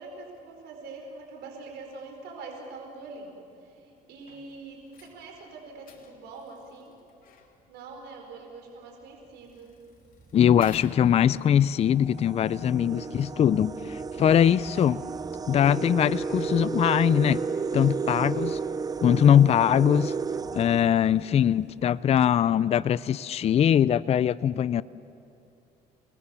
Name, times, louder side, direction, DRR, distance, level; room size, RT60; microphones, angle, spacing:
voice 1, 0.0-7.0 7.7-9.7, right 3 dB, 80° right, 2 dB, 4.9 m, -44 dB
sound 1, 4.2-11.7, left 6 dB, 55° left, 2.9 m, -55 dB
sound 2, 10.2-10.5 11.3-11.4 11.8-21.6, right 5 dB, 20° right, 0.5 m, -33 dB
voice 2, 10.3-15.0 15.5-17.4 17.7-18.6 19.0-20.1 20.5-24.8, left 9 dB, 40° left, 18 dB, 0.4 m, -22 dB
29.0 x 20.0 x 7.1 m, 2.7 s
cardioid pair, 110°, 17 cm